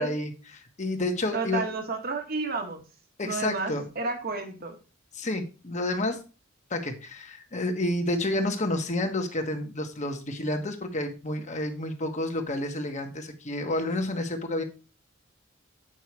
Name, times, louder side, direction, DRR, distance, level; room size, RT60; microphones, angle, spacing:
voice 1, 0.0-1.6 3.2-3.9 5.1-6.2 6.7-14.6, left 1 dB, 35° left, 5 dB, 1.5 m, -30 dB
voice 2, 1.3-2.8 3.2-4.7, right 3 dB, 50° right, 4 dB, 1.4 m, -31 dB
9.2 x 5.6 x 4.7 m, 0.33 s
head